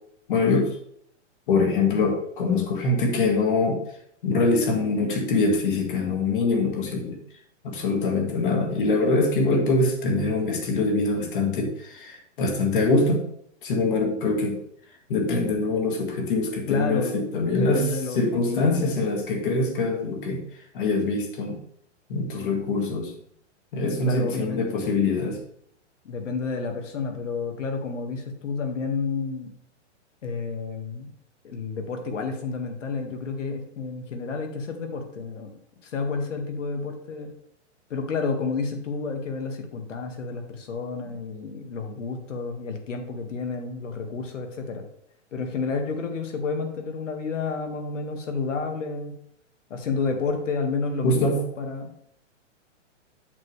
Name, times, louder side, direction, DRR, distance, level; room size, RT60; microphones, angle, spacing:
voice 1, 0.3-0.8 1.5-3.8 4.2-7.2 7.6-13.3 13.6-14.6 15.1-20.4 20.7-21.6 22.1-23.1 23.7-25.4 51.0-51.5, left 3 dB, 45° left, 2 dB, 2.0 m, -24 dB
voice 2, 16.7-17.1 17.5-18.2 18.5-19.1 24.0-24.6 26.1-29.5 30.2-31.1 31.4-35.5 35.8-37.3 37.9-44.8 45.3-49.2 49.7-51.9, left 4 dB, 80° left, 4 dB, 2.0 m, -30 dB
8.2 x 6.8 x 3.3 m, 0.71 s
hypercardioid pair, 170°, 36 cm